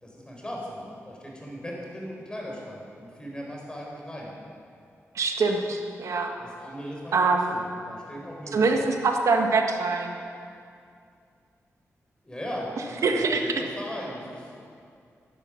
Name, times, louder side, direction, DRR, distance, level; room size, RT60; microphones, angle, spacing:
voice 1, 0.0-4.3 6.4-8.9 12.2-14.5, equal, 15° left, -2 dB, 4.6 m, -38 dB
voice 2, 5.1-6.3 7.1-7.5 8.5-10.1 13.0-13.6, right 4 dB, 75° right, 3 dB, 1.5 m, -24 dB
14.5 x 11.5 x 6.3 m, 2.4 s
cardioid pair, 75°, 5 cm